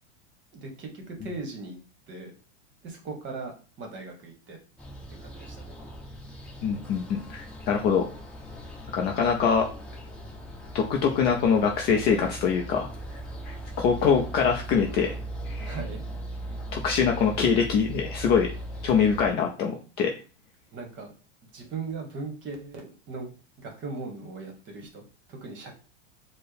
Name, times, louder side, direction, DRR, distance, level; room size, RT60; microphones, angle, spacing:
voice 1, 0.5-1.8 2.1-2.3 2.8-4.6 5.2-5.7 12.2-12.3 15.6-16.0 20.7-21.1 21.5-23.3 23.6-25.8, right 3 dB, 30° right, 3 dB, 1.1 m, -39 dB
sound 1, 4.8-19.3, right 1 dB, 5° left, 0.9 m, -39 dB
voice 2, 6.6-8.1 8.9-9.7 10.7-12.9 13.5-15.1 15.5-15.8 16.7-18.5 18.8-20.1, left 6 dB, 30° left, 2 dB, 0.4 m, -24 dB
4.3 x 2.1 x 3.3 m, 0.35 s
supercardioid pair, 140°, 38 cm